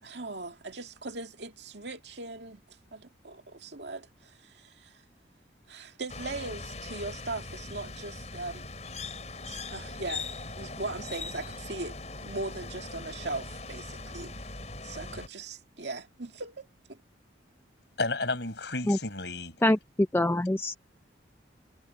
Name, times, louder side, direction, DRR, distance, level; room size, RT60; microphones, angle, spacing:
voice 1, 0.0-2.6 2.9-4.9 5.7-8.7 9.5-10.3 10.6-14.3 14.8-17.0, right 2 dB, 70° right, 2.1 m, -39 dB
sound 1, 6.1-15.3, left 3 dB, 35° left, 6.8 m, -40 dB
voice 2, 18.0-19.6, left 3 dB, 70° left, 5.4 m, -32 dB
voice 3, 20.1-20.7, left 1 dB, 10° left, 0.4 m, -24 dB
head